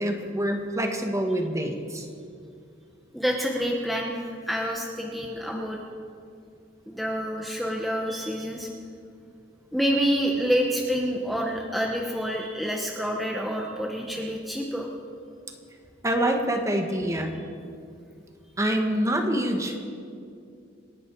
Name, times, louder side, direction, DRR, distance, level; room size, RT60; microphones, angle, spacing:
voice 1, 0.0-2.1 16.0-17.3 18.6-19.8, right 1 dB, 15° right, 4 dB, 1.4 m, -26 dB
voice 2, 3.1-4.1 4.5-5.8 6.9-8.7 9.7-14.9, equal, ahead, -1 dB, 1.1 m, -27 dB
27.5 x 10.5 x 4.7 m, 2.4 s
head